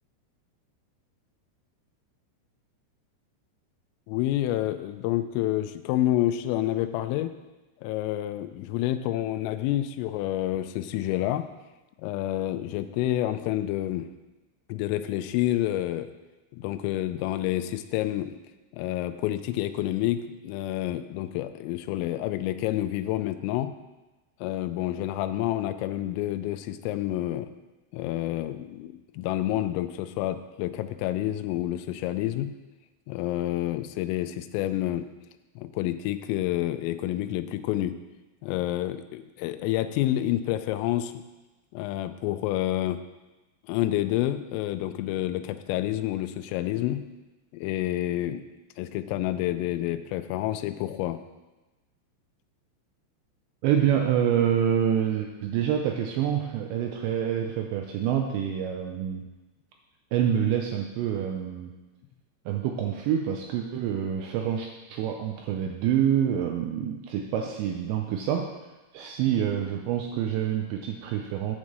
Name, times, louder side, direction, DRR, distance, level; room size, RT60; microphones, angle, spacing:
voice 1, 4.1-7.3 7.8-11.5 12.0-14.1 14.7-16.1 16.5-18.4 18.7-23.7 24.4-27.5 27.9-32.5 33.1-35.1 35.6-38.0 38.4-41.1 41.7-43.0 43.7-47.0 47.5-48.4 48.8-51.2, left 14 dB, 85° left, 10 dB, 3.2 m, -28 dB
voice 2, 53.6-59.2 60.1-61.7 62.5-68.5 68.9-71.6, right 9 dB, 85° right, 3 dB, 2.5 m, -27 dB
9.7 x 5.2 x 7.5 m, 1.1 s
omnidirectional pair, 5.8 m